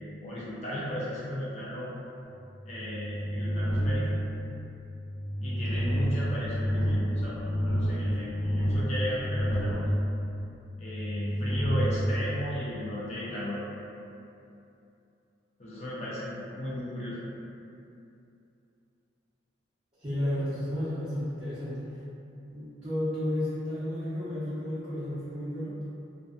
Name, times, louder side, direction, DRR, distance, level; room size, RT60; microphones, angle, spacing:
voice 1, 0.2-1.9 2.7-4.2 5.4-9.9 10.8-13.6 15.6-17.2, equal, 35° left, -8 dB, 0.4 m, -35 dB
sound 1, 2.4-13.0, equal, 60° right, 0.7 m, -30 dB
voice 2, 20.0-21.9 22.5-25.8, left 1 dB, 25° right, -16 dB, 0.7 m, -32 dB
2.5 x 2.2 x 2.3 m, 2.7 s
head